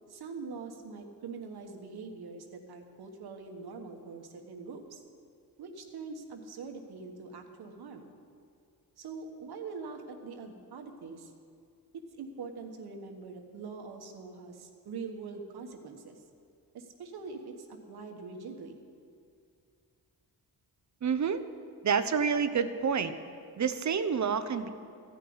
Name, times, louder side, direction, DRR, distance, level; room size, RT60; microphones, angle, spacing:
voice 1, 0.1-5.0 5.6-8.1 9.0-11.3 11.9-16.2 16.7-18.8, right 4 dB, 75° right, 3 dB, 1.4 m, -43 dB
voice 2, 21.0-21.4 21.8-23.1 23.6-24.7, right 6 dB, 45° right, 10 dB, 0.8 m, -28 dB
15.0 x 5.6 x 9.5 m, 2.3 s
cardioid pair, 85°, 39 cm